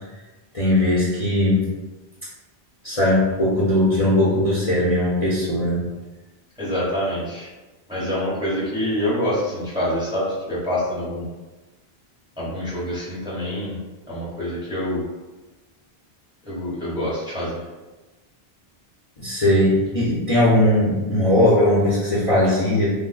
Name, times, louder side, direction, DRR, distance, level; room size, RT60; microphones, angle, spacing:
voice 1, 0.5-1.6 2.8-5.8 19.2-22.9, left 1 dB, 40° left, -7 dB, 0.6 m, -19 dB
voice 2, 6.6-7.5 7.9-11.3 12.4-13.7 14.1-15.0 16.5-17.6, left 1 dB, 5° right, -7 dB, 0.7 m, -26 dB
3.0 x 2.0 x 3.9 m, 1.2 s
omnidirectional pair, 1.1 m